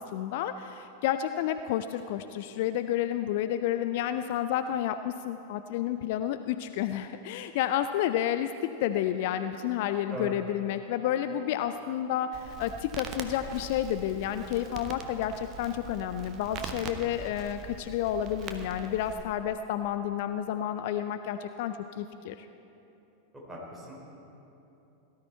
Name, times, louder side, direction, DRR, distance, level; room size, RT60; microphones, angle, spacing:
voice 1, 0.0-8.5 8.8-22.5, left 11 dB, 50° left, 10 dB, 0.4 m, -30 dB
Crackle, 12.3-19.2, right 5 dB, 35° right, 1.1 m, -42 dB
voice 2, 23.5-24.0, equal, 5° right, -4 dB, 3.6 m, -38 dB
17.5 x 12.5 x 4.4 m, 2.9 s
figure-of-eight pair, 90°, 0 cm